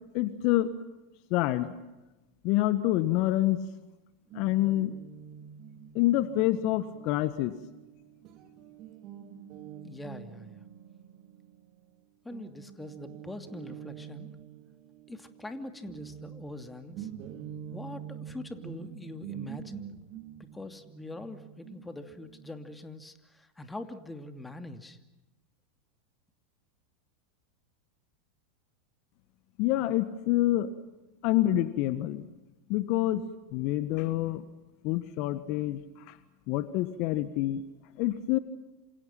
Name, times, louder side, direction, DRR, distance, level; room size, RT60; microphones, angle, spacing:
voice 1, 0.1-0.7 1.3-1.7 2.4-3.6 4.3-4.9 5.9-7.5 29.6-30.7 31.2-32.2 32.7-33.2 33.5-34.4 34.8-35.8 36.5-37.6 38.0-38.4, left 15 dB, 55° left, 12 dB, 1.5 m, -27 dB
Guitar, 4.3-12.0 12.3-22.7, right 9 dB, 45° right, 2.8 m, -46 dB
voice 2, 9.8-10.6 12.2-14.3 15.1-17.1 17.7-19.8 20.5-25.0, left 2 dB, 10° left, 7 dB, 2.7 m, -43 dB
28.5 x 27.0 x 5.9 m, 1.0 s
hypercardioid pair, 90°, 0 cm